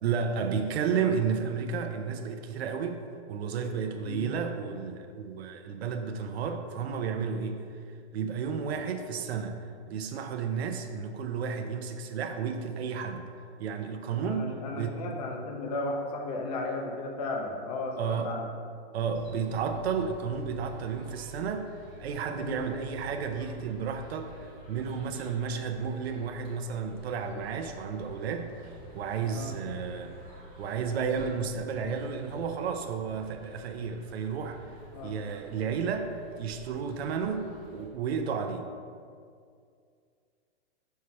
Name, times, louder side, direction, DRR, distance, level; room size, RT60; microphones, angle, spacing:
voice 1, 0.0-3.0 3.3-7.6 8.1-9.6 9.9-13.2 13.6-15.2 18.0-18.3 18.9-28.7 28.9-30.2 30.6-34.6 35.0-36.1 36.4-38.7, right 6 dB, 65° right, 5 dB, 0.6 m, -32 dB
voice 2, 14.2-18.5 22.3-22.6 29.2-29.6 34.9-35.2, left 2 dB, 35° left, 1 dB, 0.6 m, -35 dB
sound 1, 19.1-37.9, equal, 15° left, 1.0 m, -49 dB
5.6 x 3.2 x 5.6 m, 2.2 s
hypercardioid pair, 170°, 34 cm